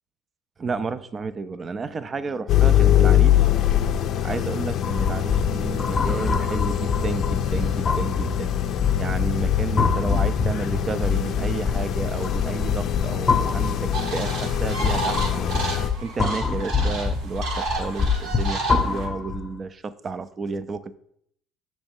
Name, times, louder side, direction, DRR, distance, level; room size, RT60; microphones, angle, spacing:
voice 1, 0.6-3.5 4.2-8.5 9.0-15.5 16.0-21.0, right 4 dB, 30° right, 14 dB, 0.4 m, -31 dB
sound 1, 2.5-15.9, left 10 dB, 55° left, 0.4 m, -24 dB
sound 2, 4.8-19.5, left 5 dB, 25° left, 0.7 m, -25 dB
sound 3, 13.9-19.1, right 3 dB, 70° right, 1.3 m, -31 dB
6.3 x 3.1 x 5.2 m, 0.70 s
supercardioid pair, 90°, 0 cm